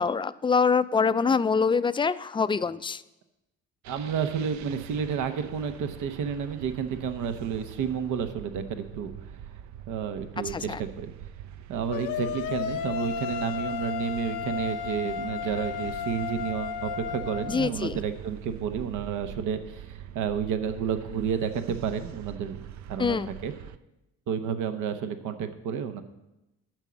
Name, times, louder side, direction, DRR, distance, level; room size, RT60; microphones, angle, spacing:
voice 1, 0.0-3.0 10.4-10.8 17.5-18.0 23.0-23.3, left 5 dB, 15° left, 15 dB, 0.3 m, -25 dB
sound 1, 3.8-23.8, right 10 dB, 65° right, 0.5 m, -44 dB
voice 2, 3.9-9.1 9.9-11.1 11.7-23.5 24.3-26.0, right 7 dB, 85° right, 9 dB, 0.9 m, -31 dB
sound 2, 11.9-17.7, left 8 dB, 90° left, 0.7 m, -33 dB
9.0 x 6.2 x 6.9 m, 0.95 s
cardioid pair, 90°, 30 cm